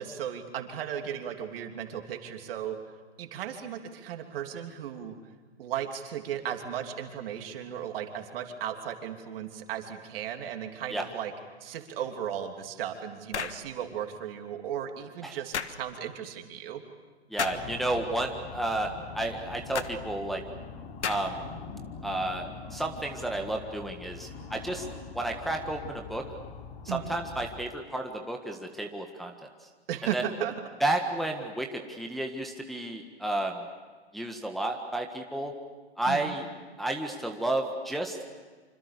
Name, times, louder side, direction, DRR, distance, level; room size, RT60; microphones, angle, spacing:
voice 1, 0.0-2.8 3.2-5.2 5.6-11.3 11.6-16.8 26.9-27.1 29.9-30.6 36.1-36.4, right 9 dB, 55° right, 4 dB, 3.1 m, -36 dB
sound 1, 13.3-13.6 15.5-15.8 17.4-17.7 19.7-19.9 21.0-21.4, left 7 dB, 80° left, 1.5 m, -32 dB
voice 2, 17.3-20.4 21.0-21.4 22.0-24.9 25.1-26.2 26.9-29.5 30.1-30.2 30.8-33.6 34.1-35.5 36.0-36.5 36.8-38.2, right 1 dB, ahead, 2 dB, 1.6 m, -31 dB
sound 2, 17.4-27.6, left 5 dB, 50° left, 3.4 m, -43 dB
26.5 x 26.0 x 6.8 m, 1.4 s
hypercardioid pair, 125°, 34 cm